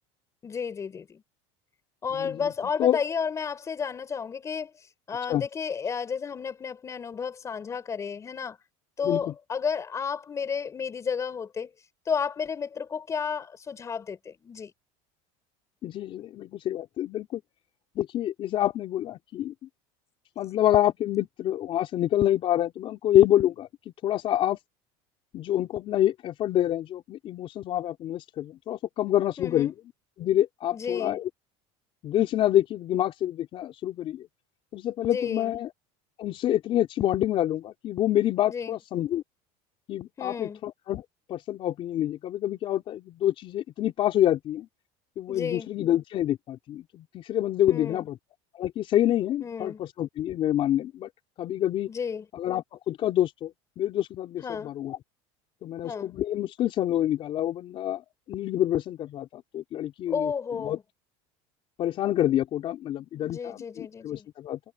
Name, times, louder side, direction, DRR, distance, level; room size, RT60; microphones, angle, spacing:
voice 1, 0.4-1.2 2.0-4.7 5.1-8.6 9.0-11.7 12.1-14.7 29.4-29.7 30.7-31.2 35.0-35.6 38.5-38.8 40.2-40.6 45.3-45.7 47.7-48.1 49.4-49.8 51.9-52.3 54.4-54.7 55.8-56.1 60.1-60.8 63.2-64.3, left 6 dB, 20° left, 5.9 m, -32 dB
voice 2, 2.2-2.5 2.8-3.0 5.3-5.4 9.0-9.3 15.8-17.4 17.9-19.5 20.4-23.7 24.0-24.6 25.3-29.7 30.2-31.3 32.0-34.3 34.7-35.7 36.2-39.2 39.9-41.0 41.3-44.7 45.2-48.2 48.5-51.1 51.4-51.9 52.3-55.0 55.6-60.8 61.8-64.6, left 12 dB, 40° left, 4.7 m, -27 dB
cardioid pair, 155°, 14 cm